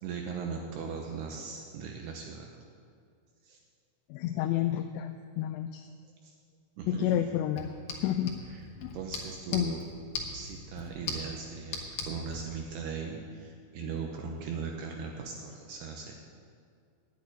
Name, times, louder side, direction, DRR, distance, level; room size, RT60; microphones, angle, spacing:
voice 1, 0.0-2.5 3.4-3.6 6.2-6.3 6.8-7.2 8.5-8.6 8.9-9.8 10.3-16.1, right 5 dB, 75° right, 1 dB, 2.5 m, -39 dB
voice 2, 4.1-5.9 6.9-8.3 8.8-8.9 9.5-9.7, left 11 dB, 85° left, 7 dB, 2.6 m, -30 dB
sound 1, 7.4-12.4, left 4 dB, 60° left, 2.2 m, -40 dB
10.5 x 8.6 x 9.3 m, 2.2 s
omnidirectional pair, 5.5 m